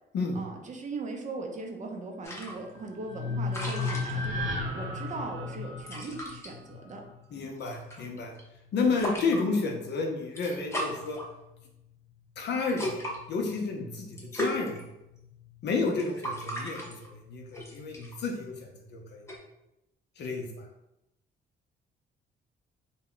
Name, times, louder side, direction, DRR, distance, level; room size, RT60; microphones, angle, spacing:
voice 1, 0.3-4.5 4.7-7.0, right 3 dB, 40° right, 2 dB, 0.5 m, -39 dB
sound 1, 2.2-19.4, equal, 15° left, 0.7 m, -40 dB
sound 2, 2.7-7.0, right 1 dB, 75° right, 0.7 m, -39 dB
sound 3, 3.1-6.8, left 5 dB, 85° left, 0.8 m, -35 dB
voice 2, 7.3-8.3 8.7-11.2 12.4-13.0 13.3-14.8 15.6-18.6 18.9-19.3 20.2-20.5, left 4 dB, 60° left, 2 dB, 0.6 m, -31 dB
2.2 x 2.1 x 3.6 m, 0.88 s
cardioid pair, 90°, 20 cm